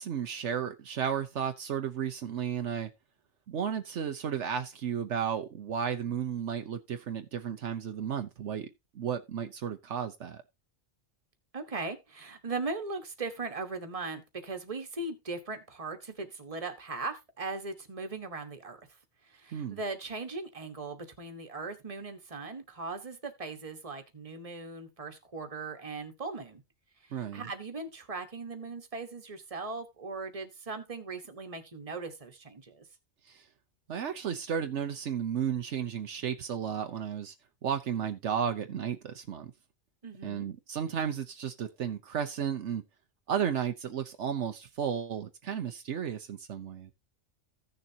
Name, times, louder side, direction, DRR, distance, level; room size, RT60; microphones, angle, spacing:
voice 1, 0.0-2.9 3.5-8.7 8.9-10.4 19.5-19.8 27.1-27.5 33.3-33.4 33.9-37.3 37.6-39.5 40.2-42.8 43.3-46.9, right 8 dB, 75° right, 1.1 m, -33 dB
voice 2, 11.5-19.0 19.2-26.6 27.0-32.9 40.0-40.5, right 3 dB, 30° right, 1.4 m, -39 dB
15.5 x 6.7 x 2.8 m
omnidirectional pair, 1.2 m